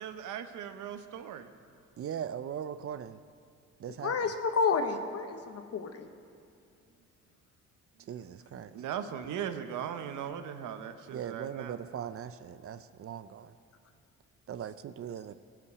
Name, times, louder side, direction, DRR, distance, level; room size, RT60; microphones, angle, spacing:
voice 1, 0.0-1.5 8.7-11.8, right 9 dB, 80° right, 9 dB, 0.9 m, -38 dB
voice 2, 2.0-3.2 3.8-4.3 8.0-8.7 11.1-13.5 14.5-15.3, right 9 dB, 50° right, 13 dB, 0.5 m, -39 dB
voice 3, 4.0-6.1, left 5 dB, 55° left, 7 dB, 1.2 m, -30 dB
17.5 x 5.9 x 8.1 m, 2.3 s
cardioid pair, 90°, 30 cm